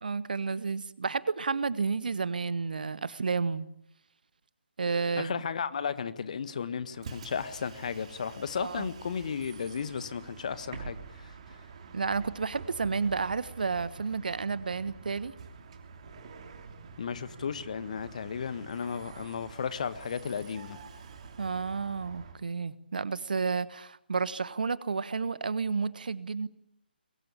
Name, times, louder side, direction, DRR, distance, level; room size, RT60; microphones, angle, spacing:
voice 1, 0.0-3.7 4.8-5.4 8.6-8.9 11.9-15.3 21.4-26.5, right 4 dB, 55° right, 1.3 m, -31 dB
voice 2, 5.2-11.6 17.0-20.8, left 6 dB, 45° left, 1.7 m, -34 dB
Bus, 6.9-22.4, right 5 dB, 35° right, 3.0 m, -47 dB
22.5 x 22.5 x 8.7 m
figure-of-eight pair, 145°, 6 cm